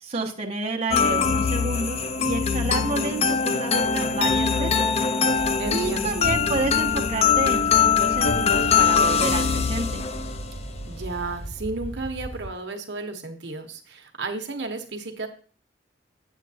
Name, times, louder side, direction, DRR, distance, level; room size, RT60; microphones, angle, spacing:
voice 1, 0.0-4.9 5.2-10.0, right 3 dB, 35° right, 0 dB, 1.0 m, -30 dB
sound 1, 0.9-10.6, left 6 dB, 35° left, 0.4 m, -22 dB
sound 2, 5.3-12.5, right 1 dB, 15° left, 3.5 m, -37 dB
voice 2, 5.6-6.2 10.9-15.3, right 3 dB, 70° right, 5 dB, 1.0 m, -33 dB
8.2 x 7.4 x 2.7 m, 0.42 s
head